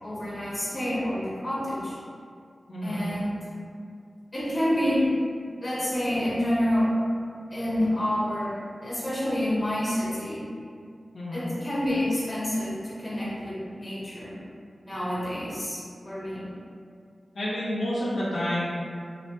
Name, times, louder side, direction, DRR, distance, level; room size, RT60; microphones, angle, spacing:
voice 1, 0.0-2.0 2.8-3.4 4.3-5.1 5.6-6.9 7.5-10.4 11.3-14.4 14.8-16.5, left 1 dB, 30° left, -7 dB, 0.9 m, -28 dB
voice 2, 2.7-3.0 11.1-11.4 17.3-18.7, equal, 80° left, -9 dB, 0.5 m, -29 dB
2.6 x 2.0 x 2.8 m, 2.3 s
wide cardioid pair, 65°, 0 cm